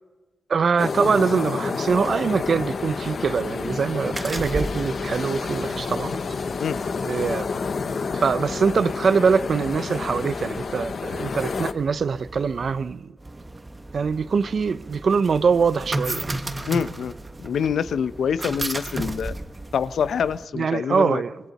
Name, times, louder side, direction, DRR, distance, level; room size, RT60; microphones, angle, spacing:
voice 1, 0.5-6.2 7.0-7.5 8.1-13.1 13.9-16.3 20.5-21.4, right 5 dB, 55° right, 0.7 m, -23 dB
sound 1, 0.8-11.7, left 5 dB, 50° left, 0.8 m, -29 dB
sound 2, 1.9-20.5, right 2 dB, 20° right, 1.2 m, -36 dB
voice 2, 16.7-17.1 17.4-19.3 19.7-21.2, left 7 dB, 85° left, 0.7 m, -25 dB
26.5 x 25.0 x 4.2 m
wide cardioid pair, 145°, 0 cm